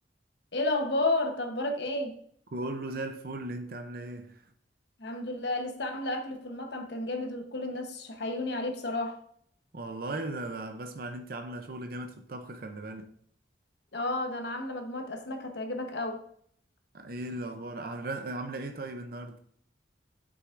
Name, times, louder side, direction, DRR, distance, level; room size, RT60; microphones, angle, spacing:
voice 1, 0.5-2.1 5.0-9.2 13.9-16.2, left 2 dB, 65° left, 1.0 m, -32 dB
voice 2, 2.5-4.4 9.7-13.1 16.9-19.4, right 2 dB, 50° right, 0.6 m, -37 dB
7.9 x 6.2 x 2.5 m
head